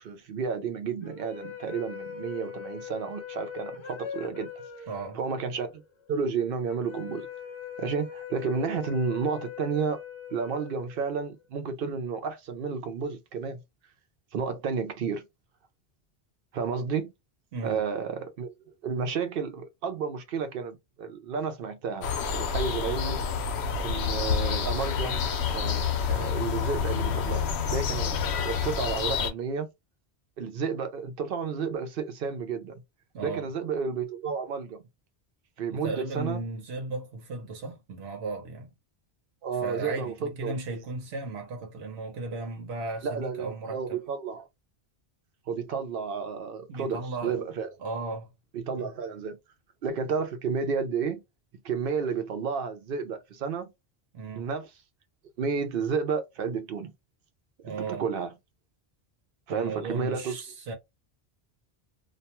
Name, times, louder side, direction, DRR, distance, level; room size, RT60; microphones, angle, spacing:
voice 1, 0.0-4.5 5.2-5.8 6.1-7.3 7.8-10.0 10.3-13.6 14.3-15.3 16.5-17.1 17.6-18.5 18.8-23.2 23.8-25.2 25.5-29.7 30.4-32.8 33.2-34.8 35.6-36.4 39.4-40.5 43.0-44.5 45.5-47.7 48.5-49.4 49.8-51.2 51.6-53.7 54.4-54.7 55.4-56.9 57.7-58.3 59.5-60.4, right 5 dB, 65° right, 0.7 m, -31 dB
sound 1, 1.0-11.4, left 8 dB, 45° left, 0.4 m, -42 dB
voice 2, 4.9-5.2 17.5-17.8 33.1-33.5 35.7-38.7 39.6-44.0 46.7-47.4 47.8-48.3 48.8-48.9 54.1-54.5 57.6-58.1 59.5-60.7, right 3 dB, 85° right, 1.0 m, -35 dB
sound 2, 22.0-29.3, left 6 dB, 85° left, 0.8 m, -28 dB
2.3 x 2.2 x 2.8 m
omnidirectional pair, 1.1 m